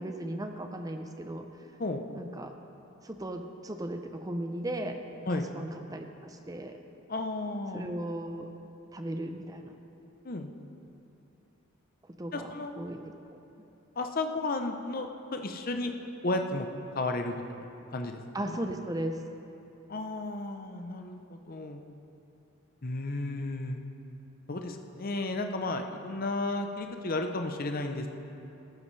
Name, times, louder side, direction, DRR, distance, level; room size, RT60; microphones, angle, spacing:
voice 1, 0.0-1.5 2.1-2.5 3.0-5.0 5.3-6.8 7.7-8.5 8.9-9.8 12.2-13.0 18.3-19.2, right 1 dB, 15° right, 6 dB, 0.5 m, -36 dB
voice 2, 7.1-7.9 10.2-10.5 12.3-12.7 14.0-15.9 16.2-16.7 16.9-17.7 17.9-18.2 18.5-18.6 19.9-21.8 22.8-23.8 24.5-28.1, left 2 dB, 40° left, 5 dB, 0.7 m, -33 dB
14.0 x 13.0 x 3.3 m, 2.8 s
head